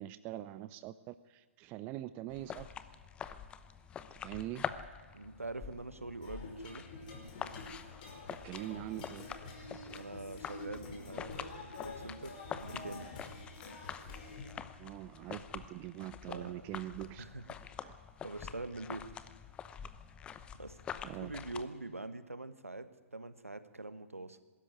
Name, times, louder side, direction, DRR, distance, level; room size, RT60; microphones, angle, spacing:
voice 1, 0.0-2.7 4.2-4.6 8.3-9.3 14.8-17.2 17.8-18.0 21.0-21.3, right 15 dB, 25° right, 14 dB, 0.6 m, -43 dB
sound 1, 2.3-21.6, left 8 dB, 15° left, 0.8 m, -46 dB
voice 2, 5.1-6.8 9.9-13.1 16.3-16.7 17.2-17.6 18.2-19.1 20.5-20.8 21.2-24.4, right 2 dB, 80° right, 11 dB, 1.5 m, -44 dB
sound 2, 6.2-14.5, left 3 dB, 40° left, 5.4 m, -48 dB
22.5 x 13.0 x 9.6 m, 1.4 s
figure-of-eight pair, 120°, 7 cm